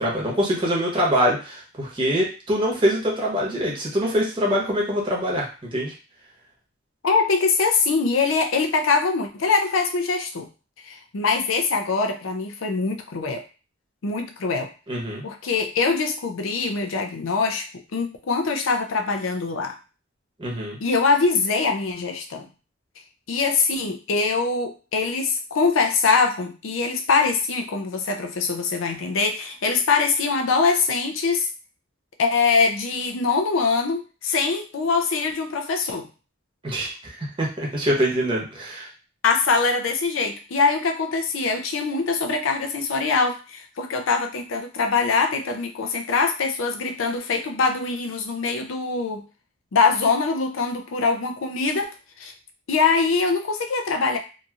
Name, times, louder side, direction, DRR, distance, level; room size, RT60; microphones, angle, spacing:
voice 1, 0.0-5.9 14.9-15.2 20.4-20.8 36.6-38.9, equal, 25° right, -3 dB, 0.9 m, -24 dB
voice 2, 7.0-10.5 10.8-13.4 14.0-14.7 15.2-17.7 17.9-19.8 20.8-22.5 23.3-31.5 32.2-36.1 39.2-49.2 49.7-52.3 52.7-54.2, left 4 dB, 90° left, 5 dB, 0.5 m, -23 dB
2.8 x 2.6 x 2.4 m, 0.34 s
head